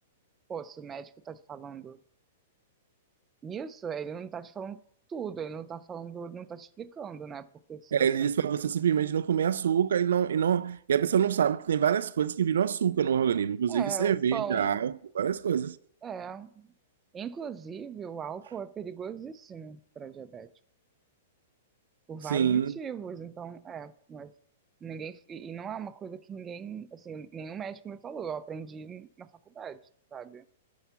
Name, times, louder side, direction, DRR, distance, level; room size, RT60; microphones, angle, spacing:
voice 1, 0.5-2.0 3.4-4.8 5.1-8.3 13.7-14.8 16.0-16.7 17.1-20.5 22.1-24.3 24.8-29.8 30.1-30.4, right 7 dB, 20° right, 0.5 m, -39 dB
voice 2, 7.9-15.8 22.3-22.7, right 8 dB, 75° right, 0.3 m, -26 dB
12.0 x 4.7 x 5.7 m
hypercardioid pair, 120°, 0 cm